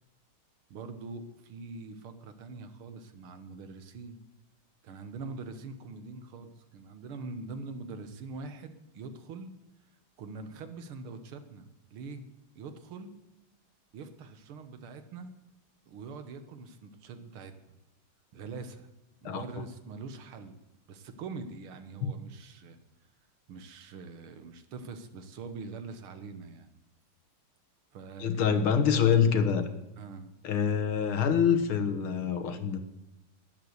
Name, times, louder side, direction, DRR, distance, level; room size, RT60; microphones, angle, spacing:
voice 1, 0.7-4.2 4.8-9.5 10.2-12.3 12.6-13.2 13.9-15.4 15.9-17.5 18.3-18.9 19.2-20.6 20.9-22.8 23.5-26.7 27.9-28.6 30.0-30.3, right 4 dB, 85° right, 9 dB, 2.1 m, -43 dB
voice 2, 28.2-29.7 30.4-32.8, left 7 dB, 80° left, 9 dB, 2.2 m, -25 dB
12.0 x 10.5 x 8.1 m, 0.97 s
omnidirectional pair, 2.3 m